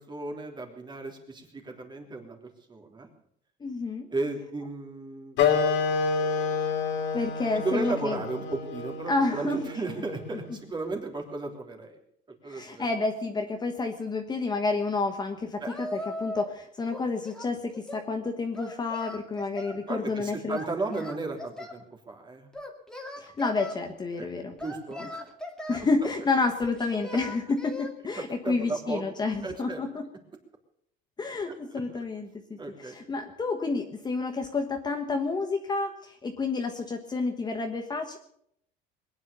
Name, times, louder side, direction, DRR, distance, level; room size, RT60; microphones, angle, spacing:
voice 1, 0.0-3.1 4.1-5.4 6.9-7.0 7.5-12.0 12.4-12.9 15.6-15.7 19.9-22.5 24.2-24.3 24.6-25.3 25.8-25.9 28.2-29.0 29.4-29.8 31.7-31.8 32.6-33.0, right 3 dB, 20° right, 3 dB, 3.2 m, -35 dB
voice 2, 3.6-4.1 7.1-8.2 9.1-9.7 12.5-20.6 20.9-21.0 23.2-24.6 25.7-30.0 31.2-38.2, left 3 dB, 20° left, 5 dB, 1.3 m, -30 dB
Wind instrument woodwind instrument, 5.4-10.5, left 5 dB, 65° left, 3.1 m, -28 dB
Singing, 15.7-16.6 16.9-18.1 18.5-19.8 20.5-21.8 22.5-23.8 24.6-25.9 26.6-27.9, left 1 dB, 5° left, 2.5 m, -39 dB
21.5 x 9.7 x 6.9 m, 0.70 s
cardioid pair, 135°, 21 cm